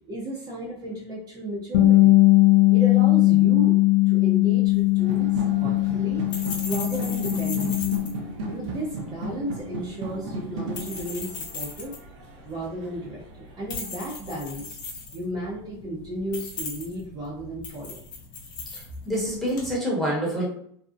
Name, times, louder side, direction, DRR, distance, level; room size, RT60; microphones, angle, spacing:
voice 1, 0.1-2.2 2.7-3.8 4.1-6.3 6.6-8.0 8.4-12.0 12.4-14.8 15.1-18.0, right 1 dB, 30° right, -4 dB, 0.6 m, -34 dB
Bass guitar, 1.7-8.0, left 19 dB, 85° left, 0.4 m, -19 dB
sound 1, 4.7-19.7, left 4 dB, 35° left, 0.8 m, -39 dB
sound 2, 5.0-13.9, right 2 dB, 75° right, 0.7 m, -36 dB
voice 2, 19.1-20.4, equal, ahead, -5 dB, 0.9 m, -26 dB
2.6 x 2.0 x 2.4 m, 0.65 s
supercardioid pair, 120°, 15 cm